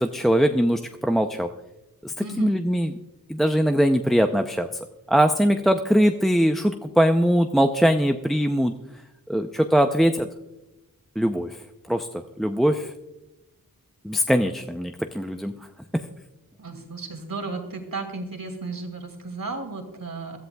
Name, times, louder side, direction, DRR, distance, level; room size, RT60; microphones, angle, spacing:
voice 1, 0.0-1.5 2.0-2.9 3.3-4.7 5.1-8.7 9.3-10.3 11.2-11.6 11.9-12.1 12.4-12.9 14.0-15.5, equal, ahead, 6 dB, 0.5 m, -21 dB
voice 2, 2.2-2.5 16.6-20.4, right 3 dB, 70° right, 4 dB, 2.4 m, -34 dB
22.5 x 13.5 x 2.3 m, 0.97 s
wide cardioid pair, 80°, 35 cm